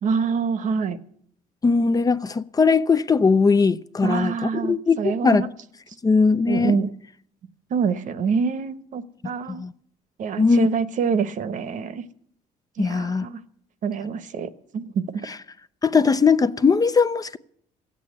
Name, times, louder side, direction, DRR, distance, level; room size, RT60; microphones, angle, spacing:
voice 1, 0.0-1.0 4.0-5.5 6.5-6.9 7.7-9.6 10.2-12.0 12.8-13.4 13.8-15.3, right 6 dB, 55° right, 1.0 m, -26 dB
voice 2, 1.6-5.4 6.0-6.7 9.6-9.7 10.4-10.7 12.8-13.3 15.8-17.4, left 4 dB, 25° left, 0.5 m, -19 dB
15.0 x 8.6 x 9.3 m
cardioid pair, 105°, 15 cm